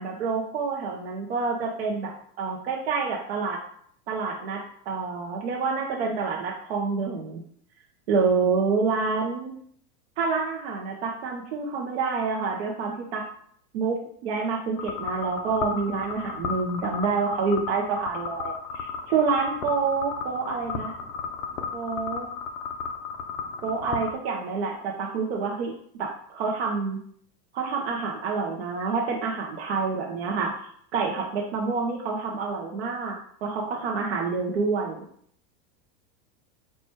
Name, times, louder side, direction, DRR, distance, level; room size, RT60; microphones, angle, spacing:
voice 1, 0.0-3.6 4.1-4.6 4.9-7.4 8.1-9.5 10.2-13.2 13.7-20.9 21.7-22.3 23.6-25.7 26.0-27.0 27.5-30.5 30.9-35.0, right 4 dB, 45° right, -1 dB, 0.4 m, -27 dB
sound 1, 14.8-24.1, left 5 dB, 60° left, 0.6 m, -34 dB
4.3 x 2.2 x 4.3 m, 0.63 s
supercardioid pair, 180°, 49 cm